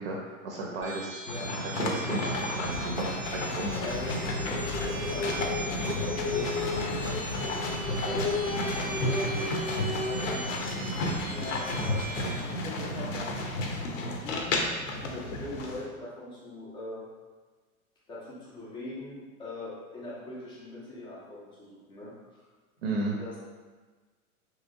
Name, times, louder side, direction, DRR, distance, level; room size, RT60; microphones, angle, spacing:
voice 1, 0.0-1.2 1.6-3.7 22.8-23.2, right 2 dB, 50° right, -1 dB, 0.6 m, -34 dB
sound 1, 0.8-12.3, right 3 dB, 10° right, 0.8 m, -41 dB
sound 2, 1.3-15.8, left 1 dB, 60° left, 0.6 m, -32 dB
sound 3, 3.6-10.4, left 3 dB, 85° left, 0.9 m, -34 dB
voice 2, 3.8-7.2 8.0-10.5 10.9-13.3 14.0-17.1 18.1-22.5 23.2-23.4, left 2 dB, 10° left, -7 dB, 0.4 m, -42 dB
3.0 x 2.9 x 2.5 m, 1.4 s
figure-of-eight pair, 90°, 44 cm